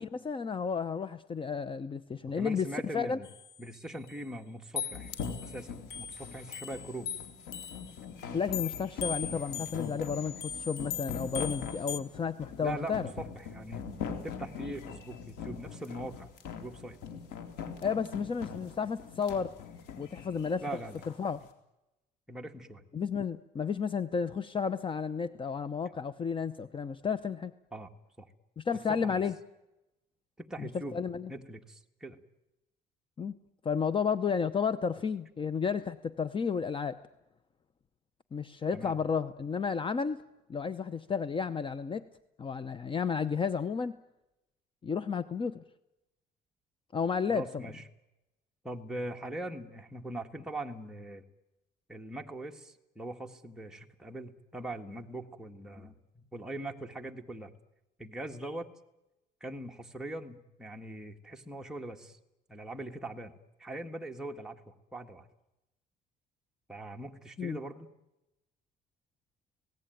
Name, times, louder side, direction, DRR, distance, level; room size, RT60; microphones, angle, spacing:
voice 1, 0.0-2.7 2.9-3.2 8.3-13.1 17.8-19.5 19.9-20.6 21.2-21.4 22.9-27.5 28.6-29.3 30.6-31.3 33.2-33.3 33.6-37.0 38.3-40.2 40.5-42.0 42.4-44.0 44.8-45.6 46.9-47.7 67.4-67.6, left 6 dB, 30° left, 14 dB, 0.8 m, -32 dB
voice 2, 2.3-3.3 3.6-5.1 5.4-7.1 12.6-13.8 14.2-16.3 16.6-17.0 20.6-21.0 22.3-22.8 27.7-27.9 28.2-28.3 28.9-29.2 30.4-31.0 31.3-32.2 38.7-38.9 47.3-47.9 48.6-51.2 51.9-57.5 58.0-58.7 59.4-62.2 62.5-63.3 63.6-65.3 66.7-67.9, right 1 dB, 5° right, 1 dB, 1.8 m, -41 dB
sound 1, 3.2-3.8 4.1-4.2 4.8-7.9 8.5-12.0, left 7 dB, 75° left, 1.6 m, -39 dB
sound 2, 4.9-21.2, left 6 dB, 90° left, 3.7 m, -42 dB
26.5 x 18.0 x 9.3 m, 0.96 s
cardioid pair, 110°, 17 cm